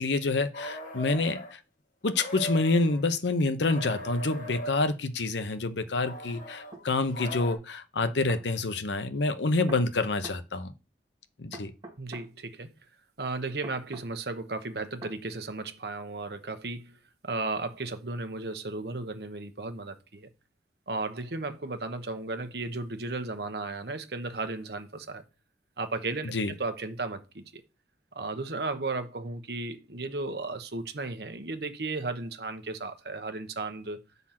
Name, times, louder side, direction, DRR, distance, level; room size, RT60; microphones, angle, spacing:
voice 1, 0.0-1.6 2.0-10.7 11.4-11.7 26.2-26.5, left 3 dB, 80° left, 0.8 m, -27 dB
sound 1, 0.5-1.5 2.1-3.0 3.6-4.9 6.0-7.5, equal, 45° left, 1.7 m, -39 dB
sound 2, 6.7-6.9 8.0-8.5 9.7-10.4 11.5-12.3 13.6-14.1 15.0-15.2, right 2 dB, 25° right, 1.7 m, -44 dB
voice 2, 12.0-12.7 13.2-16.9 17.2-20.3 20.9-25.2 25.8-26.3 26.6-27.6 28.1-34.0, right 3 dB, 60° right, 1.1 m, -35 dB
8.6 x 4.1 x 5.8 m
head